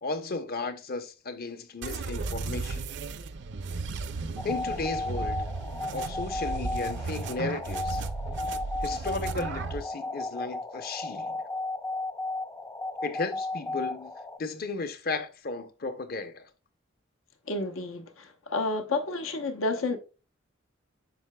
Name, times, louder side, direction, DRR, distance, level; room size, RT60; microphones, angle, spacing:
voice 1, 0.0-2.9 4.4-5.5 5.9-8.0 8.8-11.3 13.0-14.1 14.4-16.5, left 3 dB, 50° left, 0.7 m, -35 dB
sound 1, 1.8-9.8, right 3 dB, 60° right, 0.5 m, -35 dB
sound 2, 4.4-14.4, left 2 dB, 15° left, 0.4 m, -35 dB
voice 2, 17.5-20.0, left 2 dB, 90° left, 0.9 m, -30 dB
7.8 x 5.8 x 2.2 m
head